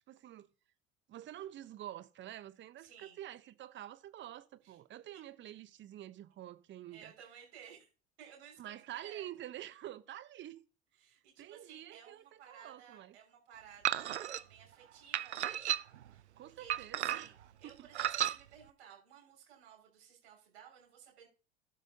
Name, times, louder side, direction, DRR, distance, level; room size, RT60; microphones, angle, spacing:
voice 1, 0.1-0.5 1.1-7.1 8.6-10.6 11.1-13.2 16.4-17.3 17.6-17.9, right 12 dB, 35° right, 0.9 m, -48 dB
voice 2, 2.8-3.2 4.6-4.8 6.9-7.9 8.2-9.2 11.0-15.6 16.1-21.3, right 8 dB, 65° right, 5.9 m, -57 dB
sound 1, 13.8-14.4 15.1-16.1 16.7-17.4 17.9-18.4, right 11 dB, 85° right, 0.5 m, -33 dB
12.5 x 9.3 x 2.8 m
figure-of-eight pair, 75°, 33 cm